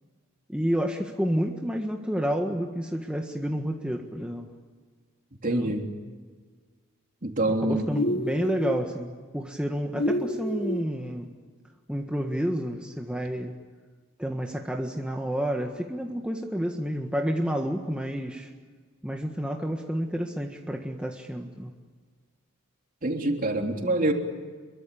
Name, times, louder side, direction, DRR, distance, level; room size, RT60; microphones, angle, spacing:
voice 1, 0.5-4.5 5.5-5.7 7.5-11.3 11.9-13.5 14.2-18.5 19.0-21.7, equal, 5° right, 2 dB, 1.6 m, -30 dB
voice 2, 5.4-5.8 7.2-7.9 23.0-24.1, right 2 dB, 40° right, 3 dB, 3.4 m, -25 dB
sound 1, 7.9-8.8 10.0-10.9, equal, 50° left, 1.7 m, -28 dB
27.5 x 23.5 x 8.7 m, 1.5 s
head